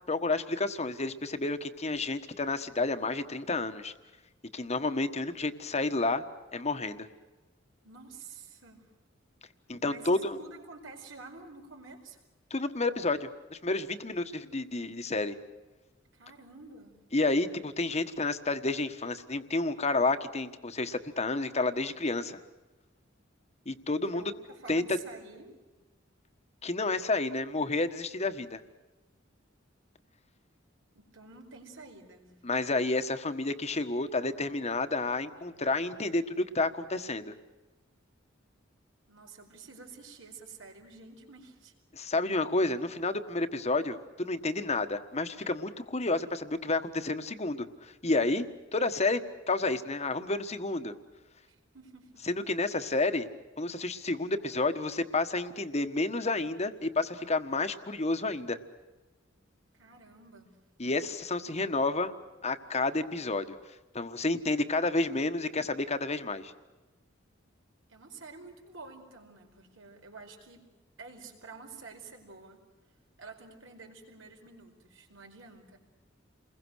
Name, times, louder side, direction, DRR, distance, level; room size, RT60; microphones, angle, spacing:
voice 1, 0.1-3.9 4.5-6.2 6.5-7.1 9.7-10.4 12.5-15.3 17.1-22.4 23.6-24.2 24.7-25.0 26.6-28.6 32.4-37.3 41.9-48.5 48.7-50.9 52.3-53.3 53.6-58.6 60.8-62.1 62.4-63.6 63.9-66.5, left 2 dB, 35° left, 9 dB, 1.4 m, -30 dB
voice 2, 7.8-8.9 9.8-12.2 16.1-17.0 24.0-25.6 30.9-32.4 39.1-41.7 51.5-52.3 59.7-60.6 67.9-70.7 71.0-72.6 73.2-75.8, right 4 dB, 85° right, 2 dB, 5.0 m, -49 dB
29.5 x 21.5 x 6.4 m, 1.1 s
head